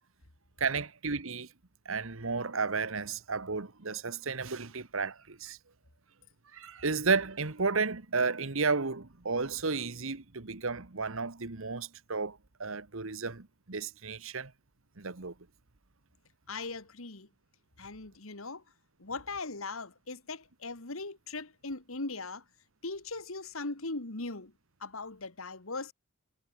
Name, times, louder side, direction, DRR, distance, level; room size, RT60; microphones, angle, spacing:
voice 1, 0.6-1.5 1.8-5.6 6.5-14.5 15.0-15.3, right 4 dB, 65° right, 1.4 m, -33 dB
voice 2, 16.5-17.3 17.8-18.6 19.0-22.4 22.8-24.5 24.8-25.9, left 3 dB, 70° left, 2.3 m, -39 dB
head